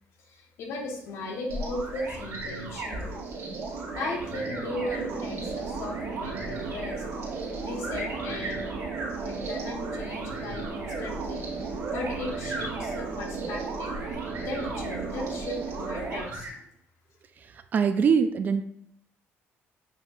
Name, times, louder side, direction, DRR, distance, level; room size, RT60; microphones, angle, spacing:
voice 1, 0.3-3.1 3.9-7.0 7.6-8.8 9.2-16.6, left 2 dB, 75° left, 1 dB, 1.0 m, -37 dB
sound 1, 0.8-16.3, right 4 dB, 85° right, 0.8 m, -36 dB
sound 2, 1.5-16.5, right 2 dB, 60° right, 1.7 m, -37 dB
voice 2, 17.7-18.6, right 6 dB, 40° right, 9 dB, 0.3 m, -22 dB
7.2 x 2.8 x 2.4 m, 0.68 s
cardioid pair, 120°, 5 cm